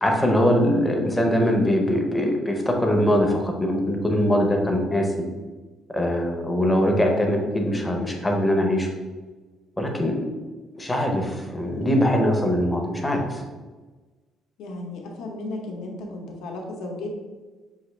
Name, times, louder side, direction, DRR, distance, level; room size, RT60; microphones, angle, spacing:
voice 1, 0.0-5.1 5.9-8.9 9.8-10.2 10.8-13.4, equal, 10° left, 1 dB, 0.5 m, -22 dB
voice 2, 14.6-17.1, left 2 dB, 75° left, 1 dB, 0.8 m, -34 dB
5.7 x 2.5 x 3.1 m, 1.3 s
cardioid pair, 175°, 0 cm